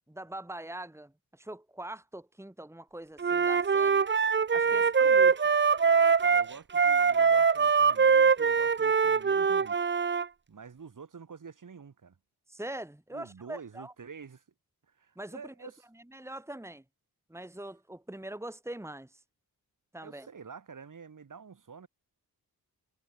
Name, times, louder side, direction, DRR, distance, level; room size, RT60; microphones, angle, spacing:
voice 1, 0.1-4.0 4.5-5.3 12.5-13.9 15.2-15.7 16.1-16.8 17.3-19.2 19.9-20.3, right 1 dB, 5° right, 3.5 m, -42 dB
Wind instrument woodwind instrument, 3.2-10.2, right 6 dB, 30° right, 0.7 m, -23 dB
voice 2, 4.5-5.3 6.2-9.8 10.5-12.2 13.1-14.4 14.9-15.8 20.0-21.9, right 6 dB, 55° right, 7.7 m, -48 dB
wide cardioid pair, 95°, 37 cm